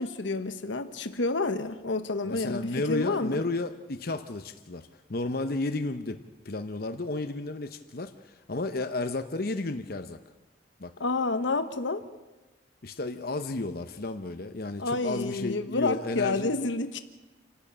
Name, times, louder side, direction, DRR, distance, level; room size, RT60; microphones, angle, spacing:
voice 1, 0.0-3.4 11.0-12.0 14.8-17.0, left 3 dB, 80° left, 9 dB, 1.1 m, -29 dB
voice 2, 2.2-6.2 6.4-10.2 10.8-10.9 12.8-16.5, left 2 dB, 55° left, 7 dB, 0.9 m, -32 dB
27.5 x 12.5 x 8.7 m, 1.1 s
head